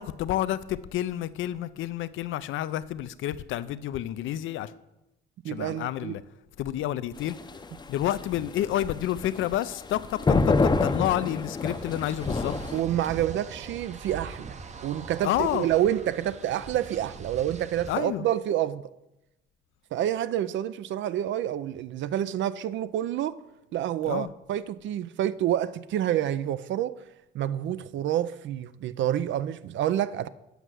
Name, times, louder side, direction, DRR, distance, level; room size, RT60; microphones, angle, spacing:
voice 1, 0.0-4.7 5.5-6.2 6.6-7.4 7.9-12.6 15.2-15.7 17.9-18.3 24.0-24.3, left 13 dB, 80° left, 0.5 m, -29 dB
voice 2, 5.4-6.2 12.7-18.9 19.9-23.4 23.7-27.0 27.3-30.3, right 11 dB, 70° right, 0.4 m, -28 dB
sound 1, 7.2-12.8, left 3 dB, 20° left, 0.6 m, -27 dB
sound 2, 11.6-17.9, right 5 dB, 35° right, 0.7 m, -42 dB
8.1 x 5.5 x 6.1 m
cardioid pair, 90°, 20 cm